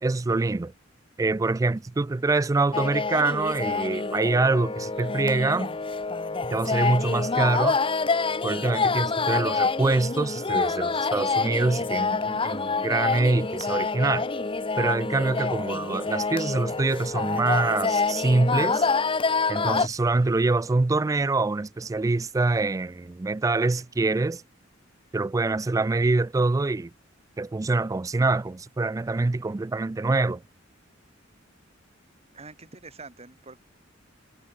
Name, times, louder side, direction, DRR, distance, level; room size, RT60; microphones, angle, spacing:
voice 1, 0.0-0.7 1.2-5.7 6.4-7.8 8.4-14.3 14.8-18.9 19.5-24.4 25.1-26.9 27.4-30.4, right 3 dB, 15° right, 0.3 m, -25 dB
sound 1, 2.7-19.9, left 4 dB, 25° left, 0.9 m, -27 dB
voice 2, 32.3-33.6, right 3 dB, 35° right, 2.4 m, -45 dB
head